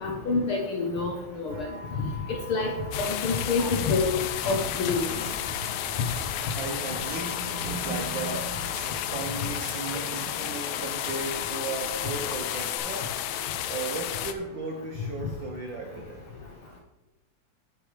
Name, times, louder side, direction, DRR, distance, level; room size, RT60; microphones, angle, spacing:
voice 1, 0.0-1.7 2.5-2.7 3.0-4.1 4.4-5.0, left 4 dB, 65° left, 1 dB, 1.4 m, -27 dB
sound 1, 1.5-12.8, left 4 dB, 40° right, 1.8 m, -44 dB
sound 2, 2.5-10.3, right 5 dB, 65° right, 1.4 m, -41 dB
sound 3, 2.9-14.3, left 12 dB, 80° left, 2.0 m, -32 dB
voice 2, 6.5-8.6 9.1-13.1 13.7-16.2, right 3 dB, 90° right, 3 dB, 1.0 m, -36 dB
9.8 x 9.8 x 3.3 m, 1.0 s
omnidirectional pair, 3.4 m